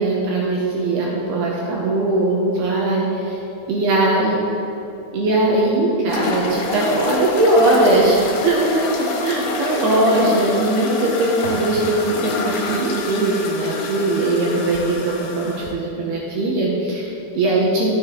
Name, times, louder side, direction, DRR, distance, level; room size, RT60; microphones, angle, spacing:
voice 1, 0.0-3.4 3.7-4.3 5.1-17.9, right 2 dB, 75° right, -3 dB, 2.7 m, -20 dB
sound 1, 6.1-15.7, left 3 dB, 80° left, 3.1 m, -27 dB
12.0 x 7.6 x 3.7 m, 2.8 s
omnidirectional pair, 5.2 m